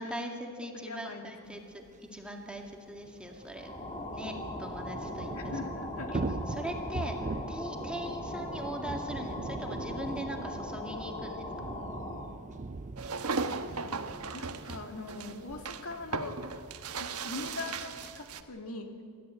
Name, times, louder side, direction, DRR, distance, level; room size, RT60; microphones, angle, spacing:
voice 1, 0.0-1.8 2.1-3.8 4.1-5.5 6.1-6.2 6.5-7.2 7.5-11.5, equal, 5° right, 2 dB, 2.1 m, -40 dB
voice 2, 0.7-1.6 5.3-6.1 13.9-14.0 14.3-16.4 17.0-18.9, left 3 dB, 75° left, 4 dB, 2.5 m, -41 dB
Thunder / Rain, 1.9-2.0 2.2-2.3 2.6-18.5, right 3 dB, 35° right, 0.5 m, -42 dB
sound 1, 3.5-12.4, left 1 dB, 25° left, 2.4 m, -39 dB
sound 2, 13.0-18.4, right 4 dB, 90° right, 1.2 m, -37 dB
27.0 x 14.0 x 9.0 m, 2.2 s
head